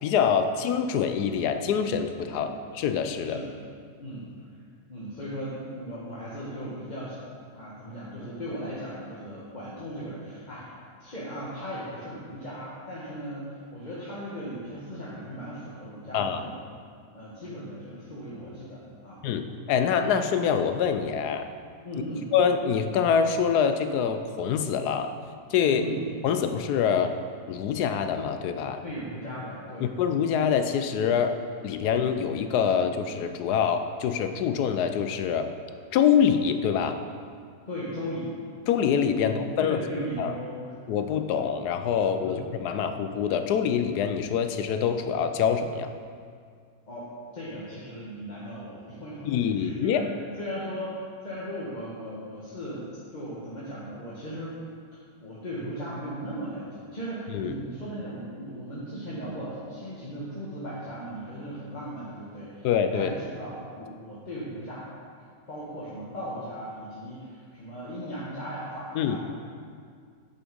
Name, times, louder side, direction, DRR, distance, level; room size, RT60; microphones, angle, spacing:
voice 1, 0.0-3.4 16.1-16.5 19.2-21.5 22.3-25.1 25.5-25.9 26.2-27.1 27.5-28.8 29.8-31.4 31.6-35.5 35.9-37.0 38.7-39.8 40.2-40.3 40.9-45.9 49.3-50.0 57.3-57.5 62.6-63.1 68.9-69.2, left 7 dB, 80° left, 8 dB, 1.2 m, -25 dB
voice 2, 4.9-7.2 7.5-10.7 11.0-16.6 17.1-19.2 21.8-22.3 25.7-26.0 28.8-29.9 37.7-38.4 39.2-40.6 42.2-42.4 46.9-50.0 50.4-54.6 54.9-62.7 62.9-64.9 65.5-69.2, equal, 30° left, -8 dB, 1.4 m, -37 dB
9.9 x 5.9 x 5.3 m, 2.1 s
omnidirectional pair, 1.7 m